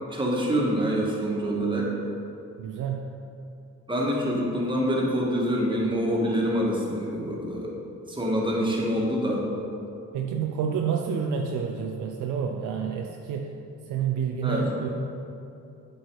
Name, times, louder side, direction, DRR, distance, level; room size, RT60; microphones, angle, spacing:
voice 1, 0.1-1.9 3.9-7.7 8.1-9.4 14.4-14.7, equal, 15° right, -3 dB, 1.6 m, -26 dB
voice 2, 2.6-3.1 10.1-13.5 13.9-14.9, right 7 dB, 80° right, 2 dB, 0.6 m, -29 dB
8.1 x 4.6 x 4.7 m, 2.7 s
cardioid pair, 90°, 30 cm